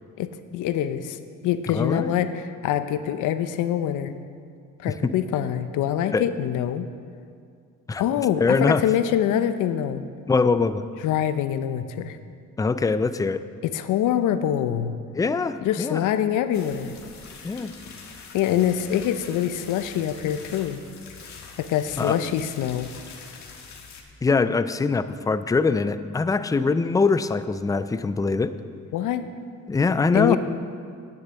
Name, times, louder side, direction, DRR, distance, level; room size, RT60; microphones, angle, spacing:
voice 1, 0.2-4.1 4.8-6.9 8.0-10.1 11.0-12.2 13.6-15.0 15.6-16.9 18.3-20.8 21.6-22.9 28.9-29.2 30.1-30.4, left 10 dB, 85° left, 11 dB, 0.6 m, -25 dB
voice 2, 1.7-2.1 5.0-5.1 6.1-6.3 7.9-8.0 8.4-8.8 10.3-10.8 12.6-13.4 15.1-16.0 17.4-17.7 22.0-22.2 24.2-28.5 29.7-30.4, left 4 dB, 10° left, 12 dB, 0.4 m, -23 dB
sound 1, 16.5-24.0, left 5 dB, 65° left, 1.4 m, -44 dB
9.9 x 6.6 x 6.9 m, 2.2 s
cardioid pair, 90°, 30 cm